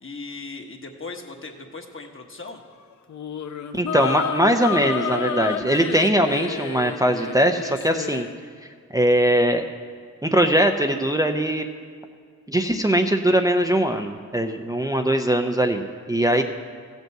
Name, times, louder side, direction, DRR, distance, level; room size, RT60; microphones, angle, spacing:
voice 1, 0.0-2.6 16.3-16.4, left 3 dB, 40° left, 3 dB, 1.3 m, -38 dB
sound 1, 3.1-8.3, left 7 dB, 60° left, 0.7 m, -30 dB
voice 2, 3.7-8.3 8.9-9.6 10.2-11.7 12.5-16.4, right 1 dB, 10° right, 4 dB, 0.5 m, -21 dB
15.0 x 5.3 x 7.6 m, 2.1 s
wide cardioid pair, 95°, 32 cm